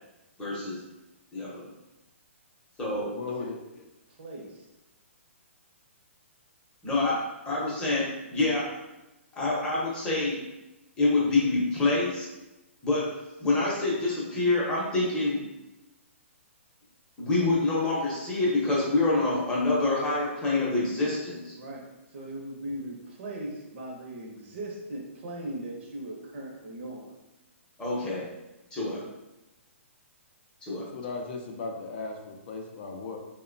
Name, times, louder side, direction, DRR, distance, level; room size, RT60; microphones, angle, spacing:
voice 1, 0.4-0.8 1.3-1.7 2.8-3.1 6.8-8.7 9.3-10.4 11.0-12.3 12.8-13.1 13.4-15.4 17.2-21.5 27.8-28.3 28.7-29.0 30.6-30.9, left 2 dB, 10° left, -6 dB, 0.7 m, -26 dB
voice 2, 3.1-3.8 30.7-33.2, left 4 dB, 50° left, 2 dB, 0.4 m, -37 dB
voice 3, 4.2-4.5 21.6-27.1, right 1 dB, 55° right, 0 dB, 0.7 m, -39 dB
2.8 x 2.1 x 2.5 m, 0.99 s
hypercardioid pair, 150°, 7 cm